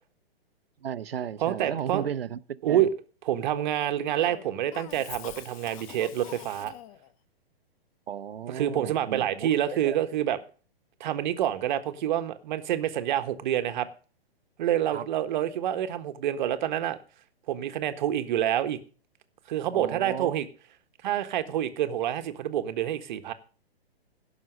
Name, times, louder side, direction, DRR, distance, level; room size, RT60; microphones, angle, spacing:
voice 1, 0.8-2.9 8.1-10.0 14.9-15.1 19.7-20.4, right 9 dB, 70° right, 0.9 m, -35 dB
voice 2, 1.4-2.1 2.6-2.9 3.3-6.7 8.5-10.4 11.0-13.9 14.6-17.0 17.5-18.8 19.5-20.5 21.0-23.3, right 11 dB, 50° right, 1.4 m, -27 dB
Cough, 4.2-7.1, left 11 dB, 35° left, 0.9 m, -45 dB
16.5 x 6.4 x 6.4 m
hypercardioid pair, 125°, 31 cm